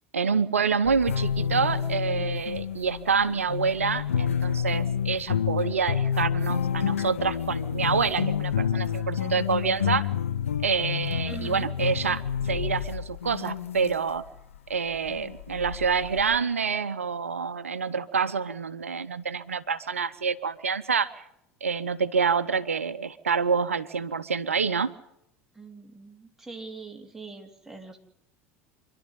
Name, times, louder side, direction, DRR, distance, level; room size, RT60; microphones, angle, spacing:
voice 1, 0.1-10.1 10.6-14.2 14.7-21.2 21.6-24.9, right 5 dB, 80° right, 14 dB, 0.8 m, -27 dB
sound 1, 0.8-14.4 14.9-16.4, left 8 dB, 75° left, 0.8 m, -29 dB
voice 2, 11.3-11.7 25.5-28.0, right 4 dB, 5° right, 2 dB, 3.1 m, -42 dB
26.5 x 11.5 x 9.1 m, 0.79 s
figure-of-eight pair, 75°, 7 cm